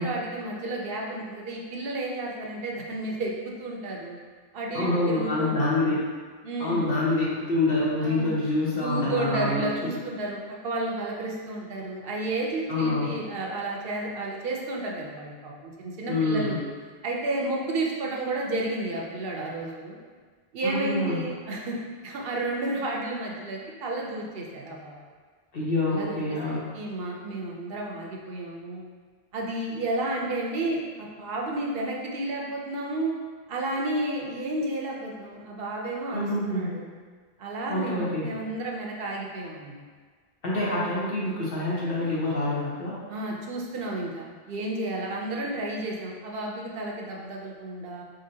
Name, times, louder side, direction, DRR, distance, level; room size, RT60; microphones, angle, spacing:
voice 1, 0.0-4.2 4.5-6.0 6.4-7.0 8.0-8.4 8.7-16.6 17.0-20.0 20.5-21.8 22.0-25.0 25.9-26.2 26.5-28.8 29.3-33.1 33.5-36.9 37.4-39.8 43.1-48.0, right 2 dB, 70° right, -2 dB, 0.8 m, -32 dB
voice 2, 4.7-6.1 6.6-9.6 12.7-13.2 16.1-16.6 20.6-21.2 25.5-26.8 36.1-36.7 37.7-38.3 40.4-43.0, left 2 dB, 65° left, -7 dB, 1.3 m, -26 dB
3.9 x 3.8 x 2.7 m, 1.5 s
omnidirectional pair, 1.0 m